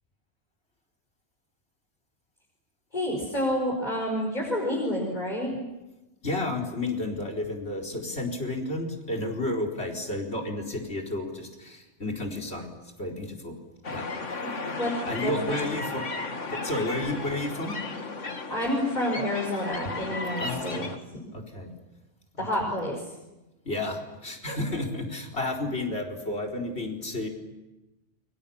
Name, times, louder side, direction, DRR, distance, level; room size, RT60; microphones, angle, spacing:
voice 1, 2.9-5.6 14.4-14.9 15.2-15.3 18.5-20.9 22.4-23.0, left 1 dB, 35° left, -1 dB, 5.4 m, -29 dB
voice 2, 6.2-12.7 13.0-13.6 13.9-14.1 15.1-16.0 16.5-17.7 19.8-19.9 20.4-20.9 21.3-21.7 22.6-22.7 23.6-27.3, left 2 dB, 55° left, 4 dB, 4.7 m, -31 dB
sound 1, 13.8-21.0, left 3 dB, 75° left, 2.2 m, -35 dB
29.5 x 24.0 x 7.2 m, 1.0 s
omnidirectional pair, 1.3 m